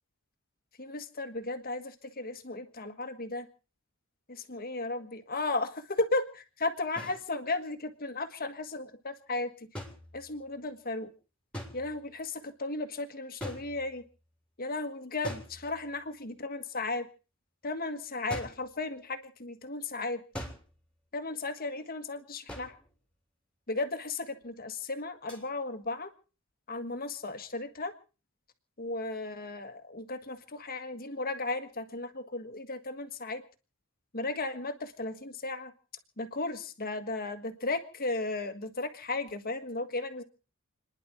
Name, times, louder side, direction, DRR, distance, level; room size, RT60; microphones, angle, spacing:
voice 1, 0.8-3.5 4.3-9.8 10.1-11.1 11.7-14.0 14.6-17.0 17.6-20.2 21.1-22.7 23.7-26.1 26.7-27.9 28.8-33.4 34.1-35.7 36.2-40.2, left 2 dB, 40° left, 9 dB, 1.6 m, -35 dB
sound 1, 7.0-7.2 9.7-10.6 11.5-12.1 13.4-14.2 15.2-16.1 18.3-18.7 20.3-20.9 22.5-22.9 25.3-25.5, equal, 5° left, 3.2 m, -42 dB
30.0 x 11.0 x 4.5 m, 0.37 s
head